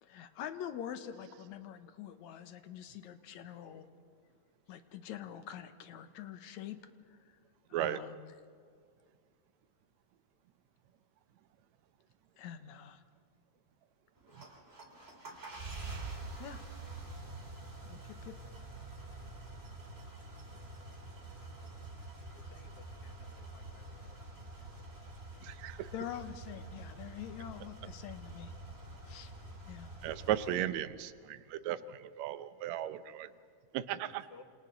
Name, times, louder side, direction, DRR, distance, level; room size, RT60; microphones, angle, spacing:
voice 1, 0.0-3.9 4.7-6.8 7.1-7.2 7.7-8.3 12.4-13.0 16.4-16.6 17.9-18.3 25.9-28.5 29.1-29.3 29.7-29.9, left 10 dB, 75° left, 9 dB, 2.4 m, -45 dB
sound 1, 14.2-30.6, right 2 dB, 20° right, 2.9 m, -47 dB
voice 2, 22.3-24.2 34.1-34.4, left 5 dB, 60° left, 7 dB, 2.2 m, -59 dB
voice 3, 25.4-25.9 30.0-33.3 33.7-34.3, right 12 dB, 75° right, 12 dB, 2.0 m, -36 dB
28.5 x 27.5 x 3.9 m, 2.1 s
omnidirectional pair, 3.3 m